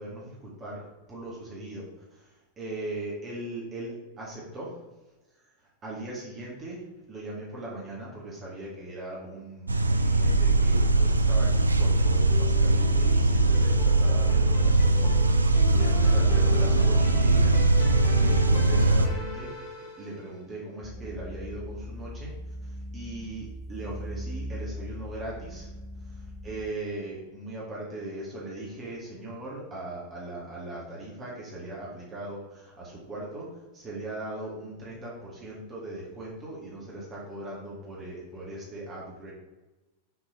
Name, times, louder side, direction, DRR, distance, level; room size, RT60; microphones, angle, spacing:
voice 1, 0.0-4.8 5.4-19.7 20.0-22.3 22.6-25.7 26.4-39.3, right 2 dB, 25° right, -5 dB, 1.8 m, -39 dB
sound 1, 9.7-19.1, right 2 dB, 80° right, 0.4 m, -21 dB
sound 2, 11.5-20.4, left 3 dB, 45° left, 1.8 m, -40 dB
sound 3, 20.8-26.7, left 1 dB, 5° left, 0.6 m, -39 dB
6.1 x 4.0 x 4.4 m, 1.1 s
figure-of-eight pair, 90°, 0 cm